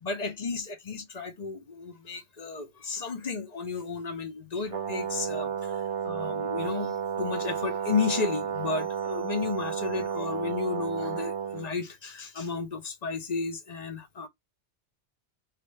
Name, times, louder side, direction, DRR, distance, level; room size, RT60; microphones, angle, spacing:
voice 1, 0.0-14.3, left 4 dB, 40° left, 0.8 m, -33 dB
Brass instrument, 4.7-11.7, right 7 dB, 30° right, 0.8 m, -32 dB
2.8 x 2.4 x 3.2 m
omnidirectional pair, 1.1 m